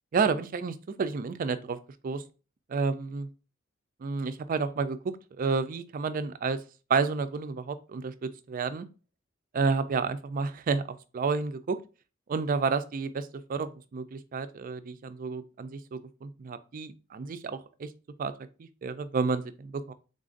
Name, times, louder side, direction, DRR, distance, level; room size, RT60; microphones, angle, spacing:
voice 1, 0.1-1.8 2.0-2.2 2.7-3.3 4.0-6.6 6.9-8.9 9.5-11.8 12.3-17.9 18.2-18.3 18.6-19.9, right 4 dB, 45° right, 0.4 m, -30 dB
3.9 x 2.5 x 3.7 m
head